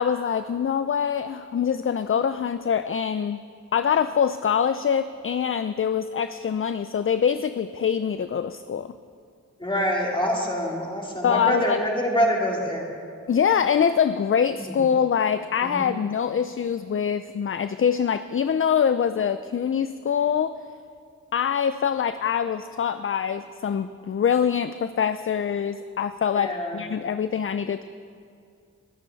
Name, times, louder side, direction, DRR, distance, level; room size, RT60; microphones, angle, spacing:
voice 1, 0.0-3.5 3.7-8.9 11.2-11.8 13.3-20.6 21.3-27.8, left 7 dB, 40° left, 12 dB, 0.5 m, -24 dB
voice 2, 9.6-12.9 14.7-14.8 15.6-15.9 26.3-26.8, equal, 15° left, -2 dB, 3.4 m, -26 dB
23.0 x 11.0 x 4.0 m, 2.3 s
cardioid pair, 50°, 32 cm